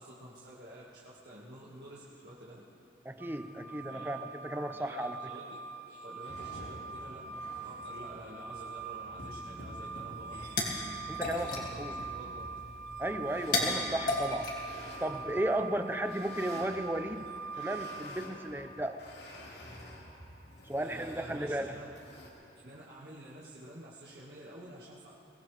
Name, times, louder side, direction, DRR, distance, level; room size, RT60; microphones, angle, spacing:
voice 1, 0.0-2.6 3.9-4.2 4.7-5.4 5.9-10.4 11.4-12.5 20.8-21.9 22.6-25.3, right 1 dB, 65° right, -7 dB, 1.9 m, -49 dB
voice 2, 3.1-5.2 11.1-12.0 13.0-14.6 15.0-17.3 17.6-19.0 20.6-21.7, right 1 dB, 10° right, 8 dB, 0.6 m, -35 dB
sound 1, 3.2-18.0, right 4 dB, 45° right, 3.0 m, -43 dB
sound 2, 6.2-22.3, left 1 dB, 70° left, 2.4 m, -50 dB
sound 3, 10.1-15.4, left 2 dB, 45° left, 2.4 m, -36 dB
23.0 x 18.0 x 3.4 m, 2.8 s
head